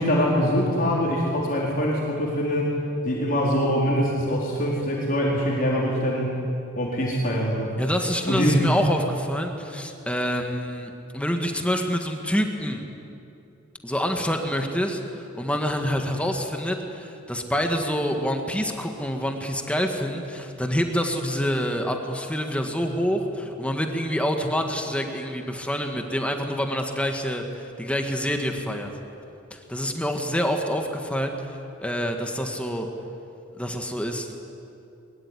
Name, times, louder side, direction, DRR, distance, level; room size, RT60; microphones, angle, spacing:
voice 1, 0.0-2.8 3.0-6.4 6.8-7.7 8.3-8.6, equal, 45° left, -4 dB, 4.3 m, -23 dB
voice 2, 7.8-12.8 13.8-15.0 15.3-28.9 29.5-31.3 31.8-32.9 33.6-34.3, equal, 5° left, 3 dB, 1.8 m, -27 dB
22.5 x 22.0 x 9.9 m, 2.8 s
head